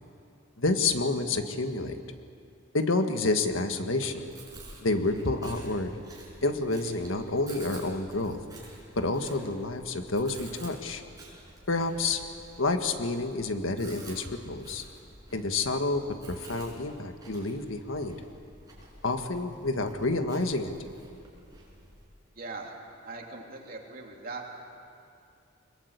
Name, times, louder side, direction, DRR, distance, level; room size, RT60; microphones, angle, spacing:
voice 1, 0.6-2.0 2.7-4.3 4.8-5.9 6.4-8.4 8.9-11.0 11.7-12.2 12.6-14.8 15.3-18.2 19.0-20.9, left 2 dB, 85° left, 7 dB, 1.7 m, -29 dB
Chewing mastication, 4.0-22.0, right 2 dB, 20° right, 6.4 m, -51 dB
voice 2, 22.3-22.7 23.0-24.4, right 3 dB, 45° right, 0 dB, 3.2 m, -40 dB
24.0 x 22.0 x 8.2 m, 2.4 s
head